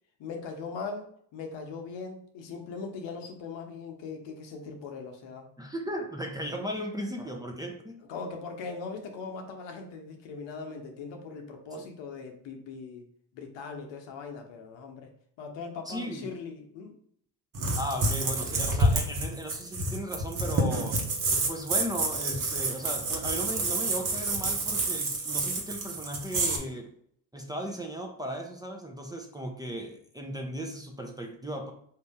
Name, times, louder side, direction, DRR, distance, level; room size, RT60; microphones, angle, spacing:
voice 1, 0.2-5.5 8.1-13.0 13.3-15.1 15.4-17.0, left 4 dB, 65° left, 4 dB, 1.0 m, -40 dB
voice 2, 5.6-8.0 15.9-16.3 17.8-21.0 21.5-26.9 27.3-31.7, equal, 10° right, 2 dB, 0.8 m, -36 dB
sound 1, 17.5-26.6, right 2 dB, 40° right, 1.2 m, -28 dB
4.2 x 2.7 x 3.5 m, 0.64 s
hypercardioid pair, 65°, 48 cm